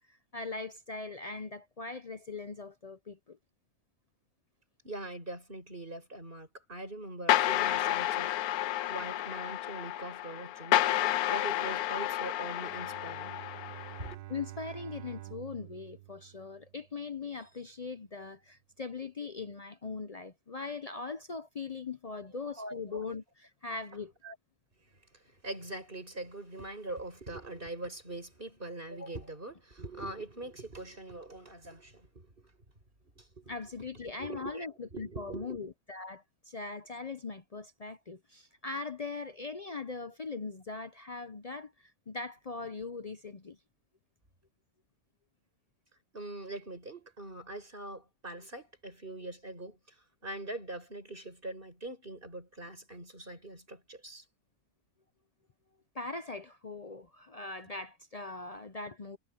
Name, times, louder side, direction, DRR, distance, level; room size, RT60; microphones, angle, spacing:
voice 1, 0.1-3.4 14.3-24.1 33.5-43.6 55.9-59.2, left 4 dB, 50° left, 0.4 m, -40 dB
voice 2, 4.8-8.3 8.8-13.4 14.0-14.2 22.6-23.0 24.2-24.3 24.9-32.5 33.1-33.5 33.9-35.6 46.1-54.2, right 2 dB, 35° right, 5.1 m, -43 dB
sound 1, 7.3-14.1, left 14 dB, 80° left, 1.1 m, -30 dB
Bowed string instrument, 12.6-17.0, right 16 dB, 85° right, 1.4 m, -48 dB
omnidirectional pair, 1.6 m